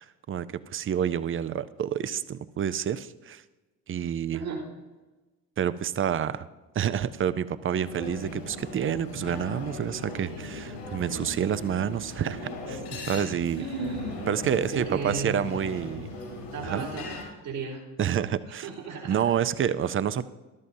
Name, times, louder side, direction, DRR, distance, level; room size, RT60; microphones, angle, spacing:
voice 1, 0.0-3.4 3.9-4.4 5.6-6.5 6.7-13.6 14.3-16.1 16.6-16.9 18.0-18.7 19.1-20.2, right 9 dB, 25° right, 15 dB, 0.5 m, -28 dB
sound 1, 7.8-17.2, left 1 dB, 85° left, 3.4 m, -38 dB
voice 2, 13.5-14.3 14.7-15.3 16.5-17.0 17.4-17.8 18.4-19.3, right 4 dB, 70° right, -6 dB, 3.3 m, -34 dB
14.0 x 12.0 x 2.7 m, 1.2 s
hypercardioid pair, 55°, 47 cm